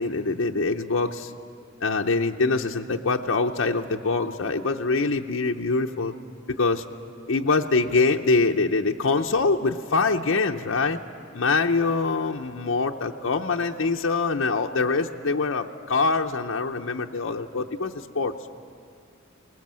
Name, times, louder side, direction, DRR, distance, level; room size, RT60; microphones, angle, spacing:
voice 1, 0.0-1.3 1.8-6.1 6.5-6.8 7.3-11.0 11.3-18.4, left 3 dB, 65° left, 2 dB, 0.7 m, -24 dB
26.0 x 20.0 x 7.5 m, 2.3 s
head